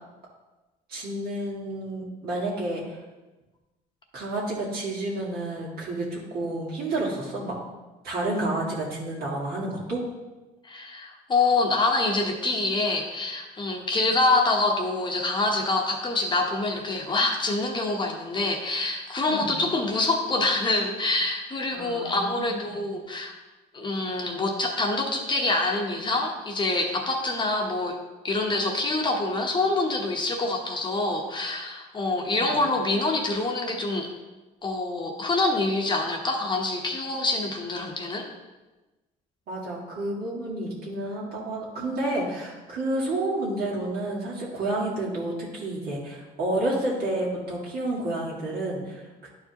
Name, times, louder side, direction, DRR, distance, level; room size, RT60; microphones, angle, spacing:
voice 1, 0.9-3.0 4.1-7.5 8.0-10.0 19.3-19.5 21.7-22.9 32.3-32.6 39.5-49.3, right 1 dB, 65° right, -6 dB, 2.1 m, -30 dB
voice 2, 10.6-23.3 23.7-28.0 28.2-34.1 34.6-38.3, left 2 dB, 25° left, 2 dB, 1.0 m, -26 dB
11.0 x 4.6 x 2.9 m, 1.1 s
cardioid pair, 110°, 17 cm